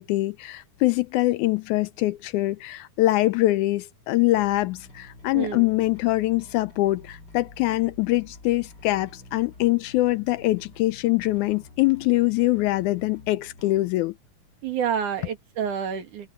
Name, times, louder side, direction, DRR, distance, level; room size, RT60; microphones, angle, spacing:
voice 1, 0.0-14.1 15.2-15.3, left 18 dB, 80° left, 1.9 m, -23 dB
Bass guitar, 4.3-13.9, left 2 dB, 30° left, 4.7 m, -49 dB
voice 2, 5.3-5.7 14.6-16.3, right 8 dB, 70° right, 3.6 m, -28 dB
omnidirectional pair, 3.7 m